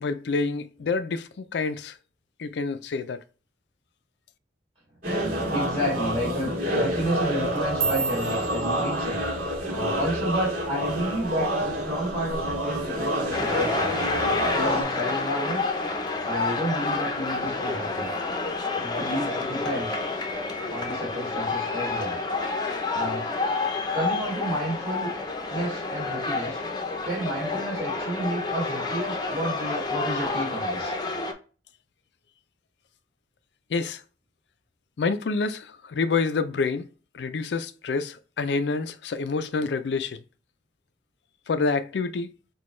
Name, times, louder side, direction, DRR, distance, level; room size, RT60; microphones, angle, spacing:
voice 1, 0.0-2.0 2.4-3.2 33.7-34.0 35.0-36.9 37.1-40.2 41.5-42.3, left 4 dB, 70° left, 0.4 m, -27 dB
sound 1, 5.0-14.8, equal, 50° right, 2.0 m, -28 dB
voice 2, 5.5-9.2 9.7-15.7 16.2-18.1 18.8-20.0 20.7-22.2 22.9-23.3 23.9-25.1 25.5-26.6 27.0-30.9, equal, 35° right, 1.9 m, -31 dB
sound 2, 7.4-11.8 12.1-12.5 12.9-13.3 13.7-13.9 14.5-14.9 15.3-16.1 16.5-16.9 17.7-17.8, right 6 dB, 70° right, 1.6 m, -35 dB
sound 3, 13.3-31.3, left 3 dB, 25° left, 0.6 m, -29 dB
6.0 x 2.2 x 3.1 m
head